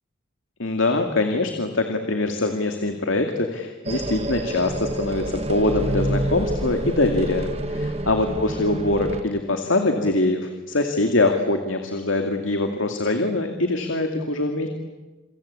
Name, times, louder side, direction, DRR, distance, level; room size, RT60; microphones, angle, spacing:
voice 1, 0.6-14.7, left 2 dB, 90° left, 5 dB, 2.4 m, -23 dB
sound 1, 3.8-9.2, right 1 dB, 30° right, 1.5 m, -28 dB
28.5 x 24.0 x 8.5 m, 1.2 s
head